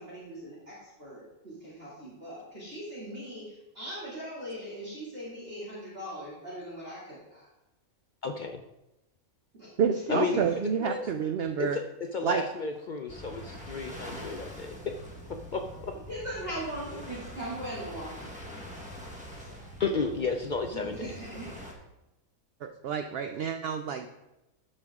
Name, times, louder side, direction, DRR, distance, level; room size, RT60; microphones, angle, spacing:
voice 1, 0.0-7.5 9.6-9.7 10.1-10.4 16.1-18.8 19.5-19.6 20.7-21.5, right 1 dB, 40° right, -8 dB, 2.6 m, -40 dB
voice 2, 8.2-8.6 10.1-11.1 11.6-11.8 12.1-14.8 15.5-16.0 19.8-21.1, left 4 dB, 65° left, 5 dB, 0.4 m, -32 dB
voice 3, 9.8-11.8 12.2-12.4 22.6-24.1, right 7 dB, 65° right, 7 dB, 0.6 m, -29 dB
sound 1, 13.1-21.7, equal, 5° right, 1.2 m, -44 dB
12.5 x 5.4 x 3.6 m, 0.94 s
omnidirectional pair, 1.5 m